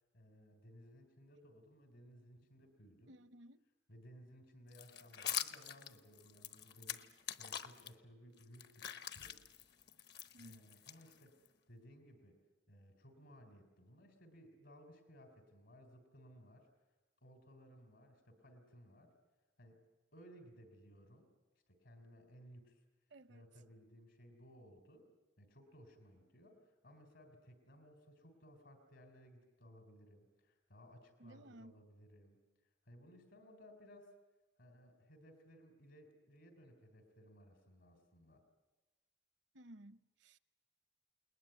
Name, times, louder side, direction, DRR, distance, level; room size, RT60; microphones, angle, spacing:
voice 1, 0.1-3.2 3.9-9.4 10.4-11.4 11.7-12.4 12.7-16.7 17.2-19.1 19.6-19.8 20.1-21.3 21.7-22.8 23.3-25.1 25.4-32.4 32.8-34.2 34.6-38.5, equal, 80° left, 3.6 m, -60 dB
voice 2, 3.1-3.7 10.3-10.6 23.1-23.5 31.2-31.8 39.5-40.4, right 1 dB, 70° right, 0.8 m, -57 dB
sound 1, 4.7-7.9 8.4-11.5, left 10 dB, 60° left, 1.0 m, -45 dB
29.0 x 20.0 x 9.2 m
head